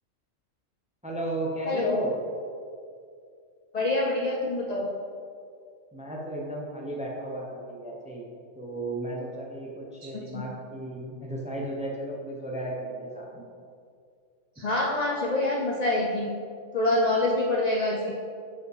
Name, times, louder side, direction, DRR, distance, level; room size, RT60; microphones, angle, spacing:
voice 1, 1.0-2.1 5.9-8.3 8.6-13.4, right 1 dB, 10° right, -2 dB, 0.5 m, -34 dB
voice 2, 3.7-4.9 10.3-10.4 14.6-16.3 16.7-18.1, left 2 dB, 50° left, -2 dB, 0.5 m, -26 dB
5.1 x 4.9 x 4.8 m, 2.3 s
omnidirectional pair, 1.4 m